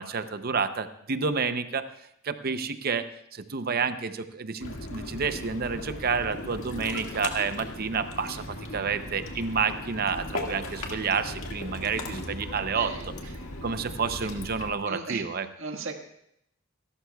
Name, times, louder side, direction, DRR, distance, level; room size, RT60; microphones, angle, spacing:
voice 1, 0.0-1.9 2.2-3.1 3.3-8.4 8.7-12.9 13.6-15.5, right 5 dB, 45° right, 10 dB, 0.7 m, -29 dB
Ocean, 4.6-14.7, left 1 dB, 70° left, 1.9 m, -37 dB
voice 2, 12.7-13.1 14.2-14.3 14.9-15.3 15.6-15.9, right 4 dB, 70° right, 4 dB, 1.6 m, -36 dB
27.0 x 12.5 x 2.3 m, 0.75 s
head